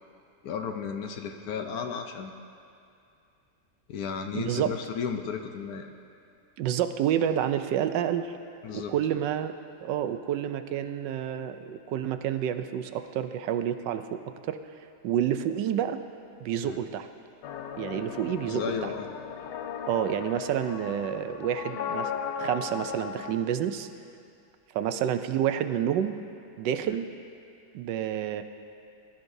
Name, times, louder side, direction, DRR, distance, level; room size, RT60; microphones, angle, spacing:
voice 1, 0.4-2.4 3.9-5.9 8.6-8.9 16.6-16.8 18.5-19.1 26.9-27.0, left 6 dB, 65° left, 5 dB, 1.1 m, -34 dB
voice 2, 4.3-4.7 6.6-8.3 8.7-9.5 9.8-14.6 15.0-16.0 16.4-17.1 17.8-18.9 19.9-22.1 22.4-23.9 24.7-26.1 26.6-27.1 27.7-28.4, right 10 dB, 90° right, 9 dB, 1.3 m, -29 dB
sound 1, 17.4-23.3, left 7 dB, 85° left, 1.3 m, -36 dB
19.0 x 11.5 x 2.7 m, 2.5 s
omnidirectional pair, 1.9 m